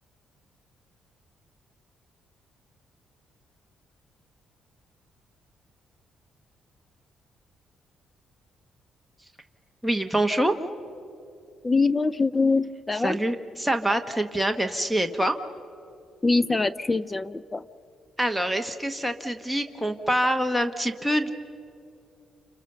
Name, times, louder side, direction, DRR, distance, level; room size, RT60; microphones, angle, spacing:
voice 1, 9.8-10.5 13.0-15.4 18.2-21.3, right 1 dB, ahead, 9 dB, 1.1 m, -25 dB
voice 2, 11.6-13.2 16.2-17.6, left 3 dB, 20° left, 16 dB, 0.5 m, -23 dB
28.5 x 26.0 x 6.8 m, 2.6 s
cardioid pair, 90°, 0 cm